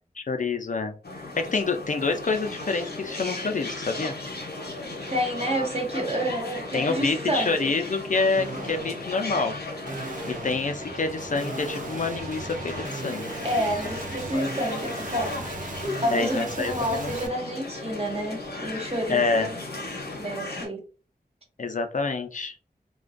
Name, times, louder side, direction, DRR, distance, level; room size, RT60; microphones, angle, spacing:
voice 1, 0.2-4.2 6.7-9.5 10.3-13.3 16.1-17.1 19.1-19.5 21.6-22.5, left 4 dB, 55° left, 6 dB, 0.4 m, -27 dB
sound 1, 1.0-20.7, left 2 dB, 85° left, 0.7 m, -36 dB
sound 2, 3.5-3.7 4.1-4.9 5.4-5.8 6.9-7.5 8.4-17.3, right 3 dB, 55° right, 0.4 m, -38 dB
voice 2, 5.1-7.7 13.4-15.4 16.0-19.6 20.2-20.8, equal, 40° right, 1 dB, 0.8 m, -29 dB
2.4 x 2.2 x 2.4 m, 0.36 s
wide cardioid pair, 50°, 16 cm